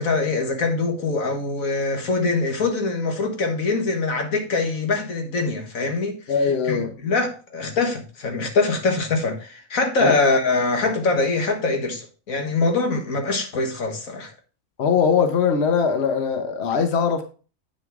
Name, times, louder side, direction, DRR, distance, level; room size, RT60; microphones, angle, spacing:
voice 1, 0.0-14.3, left 3 dB, 85° left, 1.9 m, -23 dB
voice 2, 6.3-6.9 10.0-10.1 14.8-17.2, left 6 dB, 55° left, 1.2 m, -21 dB
8.6 x 6.6 x 3.6 m
omnidirectional pair, 1.4 m